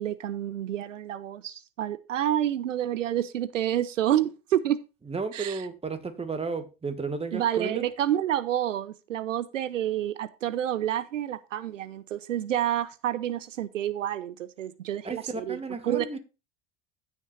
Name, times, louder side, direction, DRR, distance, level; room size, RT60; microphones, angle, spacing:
voice 1, 0.0-4.8 5.3-5.7 7.3-16.2, right 11 dB, 85° right, 0.8 m, -29 dB
voice 2, 5.1-7.9 15.0-16.2, right 4 dB, 15° right, 2.0 m, -33 dB
15.5 x 6.3 x 2.6 m
hypercardioid pair, 85°, 37 cm